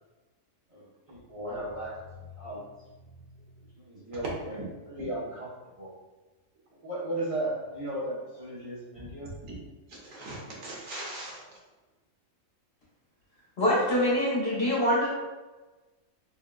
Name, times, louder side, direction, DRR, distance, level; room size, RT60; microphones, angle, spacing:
voice 1, 0.7-1.9 2.4-2.6 3.9-4.6 4.9-5.5 5.8-5.9 6.8-9.3, right 1 dB, 30° right, -8 dB, 0.7 m, -35 dB
voice 2, 9.0-9.6 9.9-11.6, right 1 dB, 75° right, -3 dB, 1.3 m, -41 dB
voice 3, 13.6-15.1, left 1 dB, 50° left, -7 dB, 1.4 m, -24 dB
3.7 x 3.6 x 2.2 m, 1.2 s
omnidirectional pair, 1.4 m